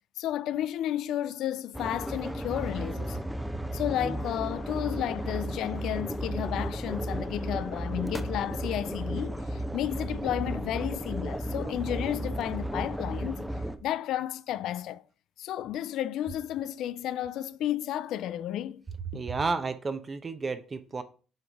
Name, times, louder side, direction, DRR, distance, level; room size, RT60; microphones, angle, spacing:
voice 1, 0.2-3.2 3.7-13.5 13.8-15.0 15.4-18.8 19.1-19.2, left 12 dB, 75° left, 0.3 m, -32 dB
sound 1, 1.7-13.8, right 1 dB, 5° right, 0.8 m, -34 dB
voice 2, 19.1-21.0, right 4 dB, 35° right, 0.9 m, -31 dB
7.7 x 3.9 x 3.5 m
supercardioid pair, 60°, 0 cm